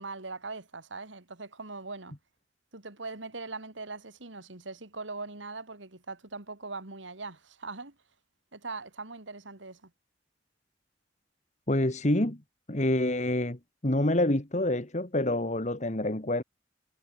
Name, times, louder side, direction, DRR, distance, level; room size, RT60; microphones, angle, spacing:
voice 1, 0.0-2.2 2.7-8.0 8.5-9.9, right 3 dB, 80° right, 2.8 m, -41 dB
voice 2, 11.7-12.4 12.7-16.4, left 1 dB, 40° left, 1.9 m, -27 dB
head